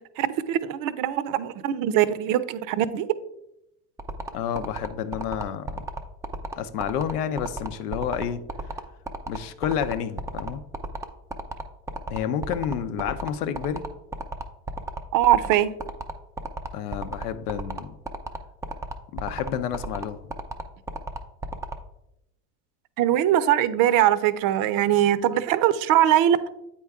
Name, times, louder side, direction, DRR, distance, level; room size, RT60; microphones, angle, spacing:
voice 1, 0.2-3.1 15.1-15.7 23.0-26.4, right 11 dB, 50° right, 15 dB, 0.6 m, -21 dB
sound 1, 4.0-21.7, right 3 dB, 10° right, 0.3 m, -33 dB
voice 2, 4.3-5.8 6.6-8.8 9.3-10.6 12.1-13.8 16.7-17.9 19.1-20.2, left 8 dB, 85° left, 10 dB, 0.7 m, -30 dB
8.4 x 4.5 x 3.5 m, 0.84 s
hypercardioid pair, 95°, 45 cm